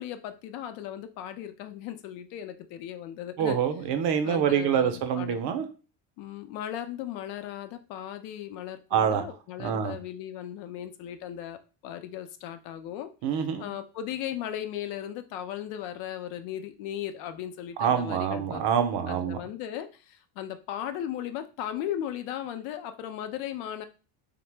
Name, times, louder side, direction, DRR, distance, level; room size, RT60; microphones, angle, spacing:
voice 1, 0.0-3.6 4.2-5.4 6.2-13.1 13.6-18.7 19.1-23.9, left 11 dB, 90° left, 9 dB, 0.6 m, -37 dB
voice 2, 3.4-5.6 8.9-9.2 9.6-9.9 13.2-13.7 17.8-19.4, right 8 dB, 60° right, 8 dB, 0.6 m, -26 dB
2.8 x 2.1 x 3.3 m, 0.35 s
cardioid pair, 125°, 47 cm